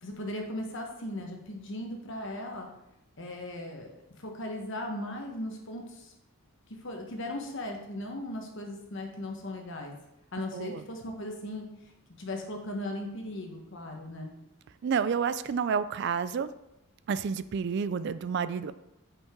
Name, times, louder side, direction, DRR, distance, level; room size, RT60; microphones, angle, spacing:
voice 1, 0.0-2.7 3.2-6.1 6.8-9.9 10.3-11.9 12.2-14.3, left 1 dB, 60° left, 2 dB, 1.3 m, -38 dB
voice 2, 14.8-16.5 17.1-18.7, right 6 dB, 55° right, 14 dB, 0.3 m, -29 dB
8.8 x 5.3 x 3.7 m, 0.87 s
head